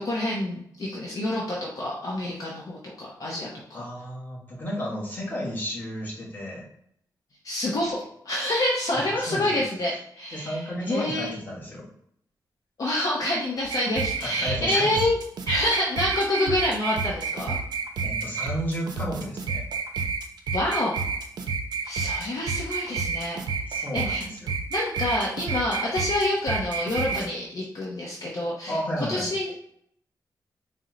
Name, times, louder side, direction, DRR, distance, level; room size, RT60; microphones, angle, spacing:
voice 1, 0.0-3.8 7.4-8.0 8.2-10.6 10.9-11.3 12.8-15.2 15.5-17.5 20.5-21.0 21.8-23.4 23.7-24.2 24.7-28.8 29.1-29.6, left 1 dB, 50° left, -4 dB, 0.7 m, -27 dB
voice 2, 3.7-6.7 9.2-9.6 10.3-11.9 14.1-15.0 15.5-15.6 18.0-19.7 23.7-24.5 28.7-29.3, equal, 25° left, -6 dB, 1.4 m, -32 dB
sound 1, 13.7-27.3, right 4 dB, 70° right, 0.5 m, -30 dB
4.2 x 2.1 x 3.8 m, 0.70 s
wide cardioid pair, 165°, 8 cm